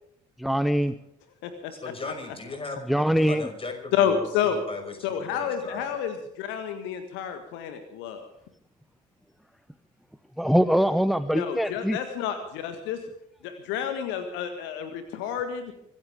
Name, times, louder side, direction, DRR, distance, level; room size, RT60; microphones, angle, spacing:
voice 1, 0.4-0.9 2.9-3.5 10.4-12.0, equal, ahead, 13 dB, 0.8 m, -23 dB
voice 2, 1.7-6.0, left 3 dB, 25° left, 5 dB, 5.7 m, -38 dB
voice 3, 3.9-4.6 5.0-8.3 11.3-13.0 13.4-15.7, left 8 dB, 60° left, 8 dB, 1.7 m, -29 dB
25.0 x 14.5 x 3.6 m, 0.77 s
figure-of-eight pair, 50°, 21 cm